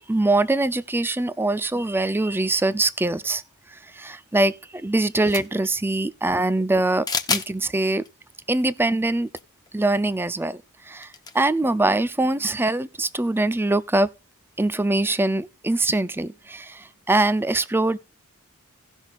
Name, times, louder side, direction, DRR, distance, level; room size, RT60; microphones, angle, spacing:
voice 1, 0.1-3.4 3.7-8.0 8.5-9.3 9.7-10.6 10.8-14.1 14.6-18.0, right 2 dB, 10° right, 0.4 m, -23 dB
sound 1, 5.2-5.7 7.1-7.5 8.0-8.1 9.3-9.4 9.7-9.8 11.0-11.4, left 5 dB, 20° left, 0.8 m, -27 dB
17.5 x 6.2 x 2.4 m
head